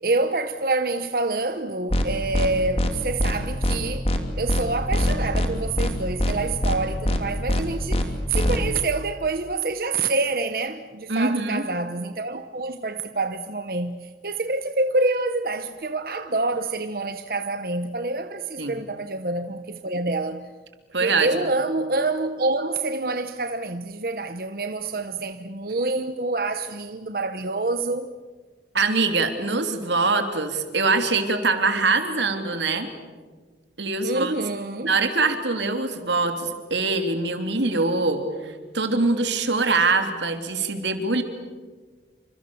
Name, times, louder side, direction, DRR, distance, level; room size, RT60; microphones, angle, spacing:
voice 1, 0.0-4.1 4.4-20.4 21.0-28.1 34.0-34.9, right 3 dB, 55° right, 1.0 m, -27 dB
sound 1, 1.9-2.0 2.3-2.5 2.8-2.9 3.2-3.3 3.6-3.8 4.0-4.2 4.5-4.6 4.9-5.5 5.8-5.9 6.2-6.3 6.6-6.8 7.0-7.2 7.5-7.6 7.9-8.0 8.3-8.6, left 1 dB, 35° left, 2.7 m, -22 dB
voice 2, 11.1-11.6 18.6-18.8 20.9-21.5 28.7-32.9 33.8-34.3 34.8-41.2, right 3 dB, 90° right, 3.2 m, -23 dB
28.0 x 26.0 x 7.1 m
head